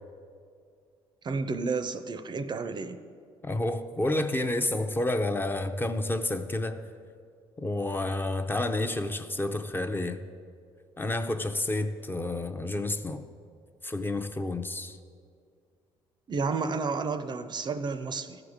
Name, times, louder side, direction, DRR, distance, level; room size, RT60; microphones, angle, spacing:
voice 1, 1.2-3.0 16.3-18.4, right 4 dB, 40° right, 11 dB, 0.5 m, -31 dB
voice 2, 3.4-6.9 7.6-10.2 11.0-13.2 13.8-15.0, left 2 dB, 20° left, 7 dB, 0.5 m, -30 dB
13.5 x 4.9 x 4.9 m, 2.2 s
supercardioid pair, 70°, 12 cm